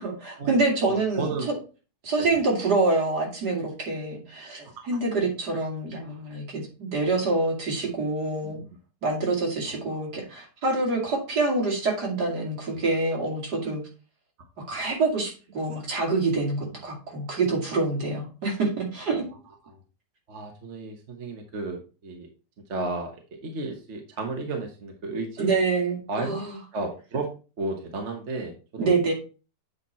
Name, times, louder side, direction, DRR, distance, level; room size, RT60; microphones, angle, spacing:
voice 1, 0.0-1.3 2.0-8.6 9.0-13.8 14.6-19.2 25.4-26.5 28.8-29.1, right 3 dB, 65° right, -1 dB, 3.0 m, -26 dB
voice 2, 0.9-1.5 2.2-2.3 4.8-4.9 8.4-8.6 9.7-10.0 16.6-16.8 19.6-19.8 20.3-22.3 22.7-25.5 26.1-26.4 26.7-27.3 27.6-28.9, right 3 dB, 45° right, 3 dB, 1.3 m, -33 dB
8.4 x 4.2 x 4.3 m, 0.34 s
omnidirectional pair, 1.9 m